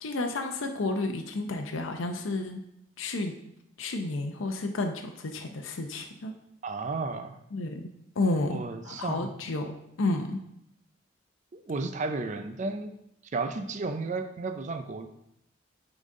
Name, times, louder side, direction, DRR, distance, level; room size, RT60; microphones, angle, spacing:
voice 1, 0.0-2.6 3.0-3.3 3.8-6.3 7.5-7.9 8.2-8.6 8.8-9.7 10.0-10.4, left 2 dB, 80° left, 4 dB, 0.6 m, -31 dB
voice 2, 6.6-7.4 8.5-9.3 11.5-12.9 13.3-15.1, right 3 dB, 40° right, 8 dB, 0.4 m, -33 dB
8.8 x 4.0 x 3.7 m, 0.79 s
head